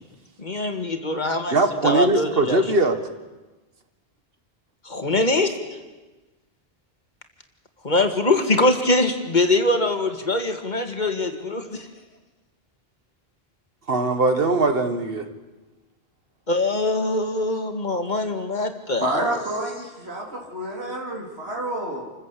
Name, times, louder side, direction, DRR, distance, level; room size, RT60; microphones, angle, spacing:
voice 1, 0.4-1.6 1.8-2.6 4.8-5.6 7.8-11.9 16.5-19.3, left 2 dB, 45° left, 6 dB, 2.2 m, -23 dB
voice 2, 1.5-3.0 13.9-15.3, right 2 dB, 65° right, 8 dB, 2.0 m, -21 dB
voice 3, 19.0-22.0, right 1 dB, 90° right, -1 dB, 4.1 m, -28 dB
28.0 x 15.0 x 8.4 m, 1.2 s
omnidirectional pair, 1.0 m